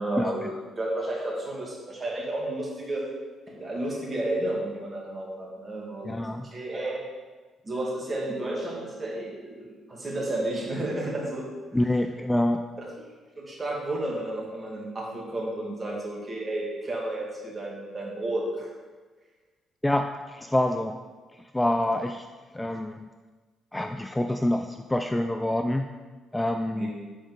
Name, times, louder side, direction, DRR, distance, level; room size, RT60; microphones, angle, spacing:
voice 1, 0.0-3.1 3.5-7.0 7.6-11.4 12.8-12.9 13.4-18.7 26.7-26.9, right 1 dB, 30° right, -3 dB, 2.0 m, -32 dB
voice 2, 6.1-6.4 11.7-12.6 19.8-21.0 21.5-22.2 22.5-23.1 23.7-25.8 26.3-26.9, left 1 dB, 10° left, 6 dB, 0.3 m, -26 dB
7.2 x 5.0 x 3.9 m, 1.4 s
cardioid pair, 90°, 0 cm